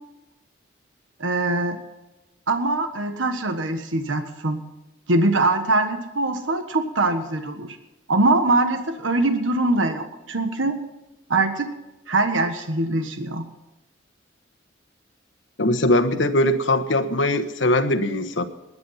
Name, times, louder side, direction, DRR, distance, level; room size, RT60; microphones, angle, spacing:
voice 1, 1.2-1.8 2.5-4.6 5.1-7.8 8.1-10.8 11.3-11.7 12.1-13.4, right 2 dB, 80° right, 7 dB, 1.4 m, -22 dB
voice 2, 15.6-18.4, left 1 dB, 75° left, 9 dB, 1.3 m, -21 dB
20.5 x 9.8 x 5.7 m, 1.0 s
head